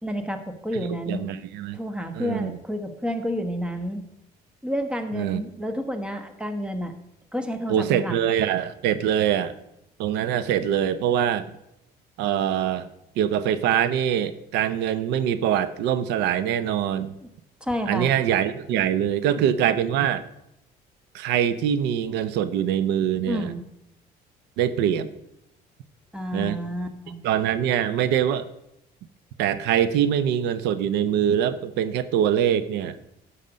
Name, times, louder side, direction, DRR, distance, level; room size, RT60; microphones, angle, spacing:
voice 1, 0.0-1.3 1.7-4.0 4.6-6.9 7.3-8.2 17.2-17.3 17.6-18.1 23.3-23.6 26.1-27.2, equal, 5° right, 7 dB, 1.2 m, -30 dB
voice 2, 0.7-1.8 2.1-2.6 5.1-5.4 7.7-9.5 10.0-11.4 12.2-12.9 13.2-17.2 17.9-20.3 21.1-23.5 24.6-25.1 26.3-26.6 27.2-28.5 29.4-33.0, right 9 dB, 90° right, 14 dB, 0.6 m, -23 dB
11.0 x 6.6 x 5.1 m, 0.82 s
cardioid pair, 110°, 17 cm